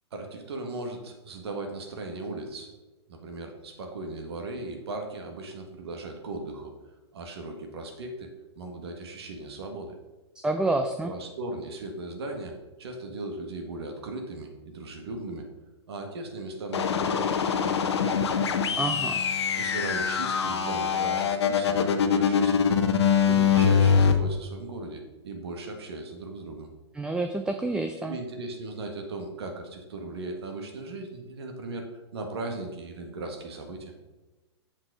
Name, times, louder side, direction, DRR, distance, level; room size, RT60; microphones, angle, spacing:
voice 1, 0.1-2.7 3.1-6.7 7.1-8.3 8.6-9.9 11.0-15.5 15.9-18.4 19.5-22.8 23.2-26.7 28.0-33.9, right 2 dB, 65° right, 3 dB, 1.8 m, -37 dB
voice 2, 10.4-11.1 18.7-19.2 26.9-28.2, right 2 dB, 5° right, 6 dB, 0.4 m, -28 dB
sound 1, 16.7-24.1, left 7 dB, 70° left, 0.9 m, -23 dB
7.5 x 6.2 x 5.0 m, 1.1 s
hypercardioid pair, 115°, 14 cm